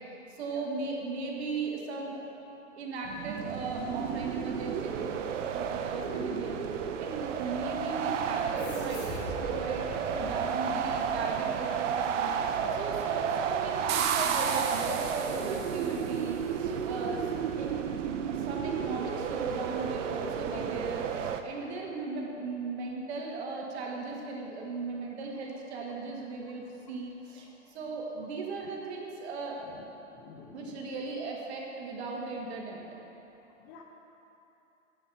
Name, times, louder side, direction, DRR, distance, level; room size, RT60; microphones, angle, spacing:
voice 1, 0.3-2.2 2.8-6.6 7.0-17.3 17.6-17.7 18.3-29.6 30.5-32.8, right 3 dB, 55° right, -1 dB, 1.6 m, -37 dB
sound 1, 3.0-21.4, right 7 dB, 75° right, 0.6 m, -32 dB
sound 2, 8.6-11.6, left 2 dB, 55° left, 2.0 m, -44 dB
sound 3, 13.9-16.3, right 8 dB, 25° right, 0.4 m, -36 dB
voice 2, 17.1-17.4 18.0-18.1 20.5-20.6 29.7-29.8 30.3-30.8 33.7-33.8, left 6 dB, 25° left, 1 dB, 0.6 m, -48 dB
9.9 x 5.5 x 4.7 m, 2.9 s
hypercardioid pair, 140°, 38 cm